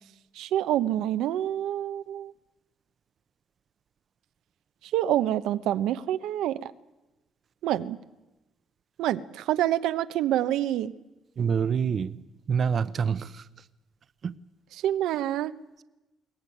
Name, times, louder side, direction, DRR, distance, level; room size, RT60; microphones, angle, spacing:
voice 1, 0.3-2.3 4.9-6.7 7.6-8.0 9.0-10.9 14.7-15.5, right 12 dB, 85° right, 0.9 m, -27 dB
voice 2, 11.4-12.2 12.5-13.4 14.2-14.3, right 6 dB, 45° right, 0.8 m, -26 dB
22.0 x 18.0 x 9.9 m
cardioid pair, 120°, 0 cm